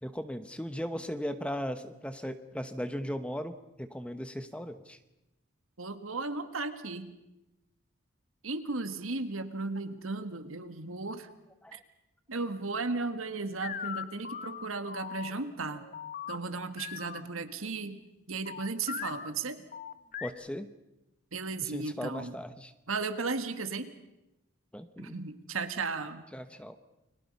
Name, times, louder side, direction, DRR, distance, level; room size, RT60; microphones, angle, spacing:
voice 1, 0.0-5.0 11.6-11.8 20.2-20.7 21.6-22.7 24.7-25.2 26.3-26.8, equal, 5° left, 10 dB, 0.9 m, -37 dB
voice 2, 5.8-7.2 8.4-11.3 11.7-11.8 12.3-15.8 16.3-18.0 18.3-19.6 21.3-22.3 22.9-23.9 25.0-26.3, right 3 dB, 80° right, 9 dB, 1.8 m, -35 dB
sound 1, 13.6-17.2 18.4-19.3 19.7-20.3, left 8 dB, 40° left, 0.9 m, -40 dB
30.0 x 22.0 x 5.4 m, 0.94 s
head